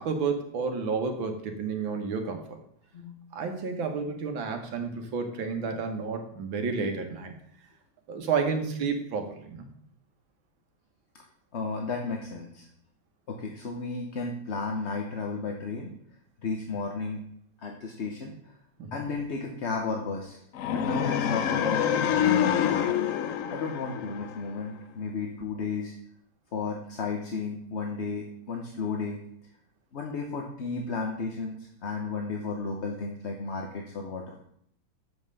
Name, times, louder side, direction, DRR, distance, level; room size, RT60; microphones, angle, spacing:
voice 1, 0.0-2.6 3.3-7.3 8.1-9.7 18.8-19.1, right 5 dB, 90° right, 5 dB, 2.0 m, -31 dB
voice 2, 11.5-12.7 13.3-15.9 16.4-17.2 17.6-18.5 18.9-20.4 20.7-22.9 23.5-25.9 26.5-29.5 29.9-34.4, left 4 dB, 50° left, 2 dB, 0.9 m, -33 dB
sound 1, 20.5-24.7, left 9 dB, 75° left, 0.7 m, -26 dB
7.9 x 5.5 x 6.5 m, 0.69 s
omnidirectional pair, 2.1 m